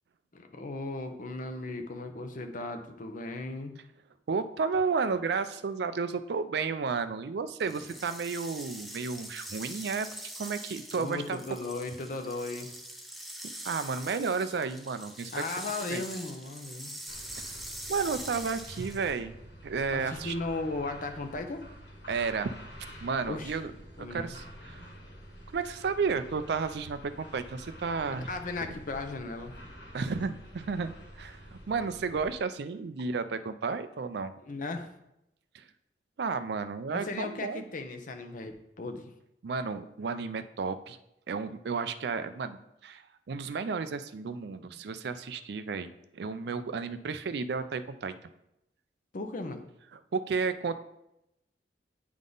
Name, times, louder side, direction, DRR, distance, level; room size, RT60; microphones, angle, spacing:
voice 1, 0.3-3.7 10.9-12.7 15.3-16.9 19.9-21.6 23.2-23.5 24.0-24.3 28.3-29.6 34.4-34.9 36.9-39.1 49.1-49.6, left 3 dB, 50° left, 6 dB, 0.7 m, -36 dB
voice 2, 4.3-10.1 10.4-11.4 13.6-15.4 15.9-16.0 17.4-17.6 17.9-19.4 19.6-20.3 22.1-22.5 23.0-23.7 24.0-24.9 25.5-28.3 29.9-34.3 35.5-35.7 36.2-37.6 39.4-41.0 41.3-48.1 49.9-50.8, right 5 dB, 65° right, 11 dB, 0.4 m, -32 dB
sound 1, 7.6-19.2, right 1 dB, ahead, 0.5 m, -43 dB
sound 2, 17.1-32.3, equal, 80° left, 1.6 m, -48 dB
9.4 x 3.6 x 3.9 m, 0.84 s
head